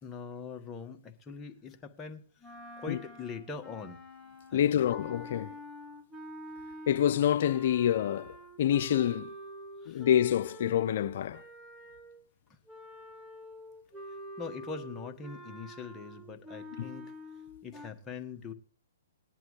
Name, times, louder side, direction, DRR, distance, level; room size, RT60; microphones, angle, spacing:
voice 1, 0.0-2.3 2.8-4.0 4.5-4.9 9.8-10.1 12.5-12.6 14.4-17.1 17.6-18.5, left 5 dB, 15° left, 1.6 m, -42 dB
sound 1, 2.4-12.2 12.7-17.9, equal, ahead, 2.0 m, -47 dB
voice 2, 4.5-5.6 6.9-9.3 9.9-11.4 16.8-16.9, left 10 dB, 55° left, 0.7 m, -27 dB
19.5 x 11.0 x 3.2 m
hypercardioid pair, 125°, 0 cm